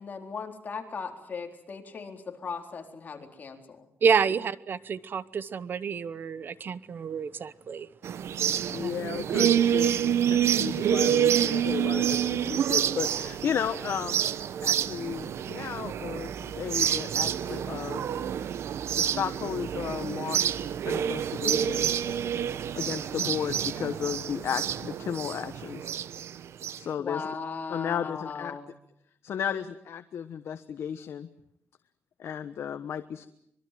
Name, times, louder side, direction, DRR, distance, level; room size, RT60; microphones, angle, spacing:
voice 1, 0.0-3.9 27.0-28.7, left 5 dB, 40° left, 4 dB, 4.1 m, -38 dB
voice 2, 4.0-7.9 8.8-9.0 22.5-22.7, right 6 dB, 50° right, 17 dB, 0.9 m, -28 dB
sound 1, 8.0-26.8, right 9 dB, 80° right, 1.0 m, -28 dB
voice 3, 8.7-14.3 14.6-18.0 18.9-20.6 20.8-21.9 22.8-25.9 26.8-27.2 27.7-28.6 29.2-31.3 32.2-33.3, left 8 dB, 70° left, 9 dB, 1.2 m, -34 dB
25.5 x 22.5 x 7.7 m, 0.75 s
wide cardioid pair, 150°, 5 cm